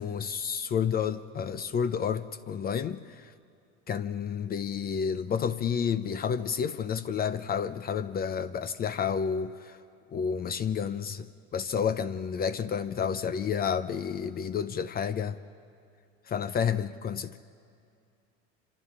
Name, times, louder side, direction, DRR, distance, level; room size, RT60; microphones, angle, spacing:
voice 1, 0.0-3.2 3.9-9.8 10.1-15.4 16.3-17.4, left 7 dB, 30° left, 0.6 m, -30 dB
26.5 x 26.5 x 3.7 m
supercardioid pair, 100°, 33 cm